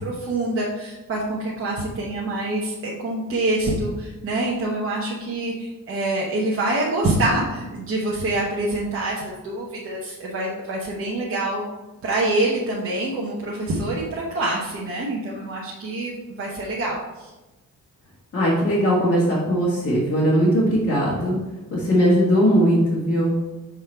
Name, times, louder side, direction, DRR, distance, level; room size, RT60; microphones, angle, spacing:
voice 1, 0.0-11.7 12.0-17.3, right 2 dB, 40° right, -5 dB, 0.9 m, -26 dB
voice 2, 18.3-21.4 21.7-23.4, equal, 40° left, -8 dB, 1.7 m, -19 dB
6.9 x 3.8 x 4.4 m, 1.1 s
wide cardioid pair, 170°, 34 cm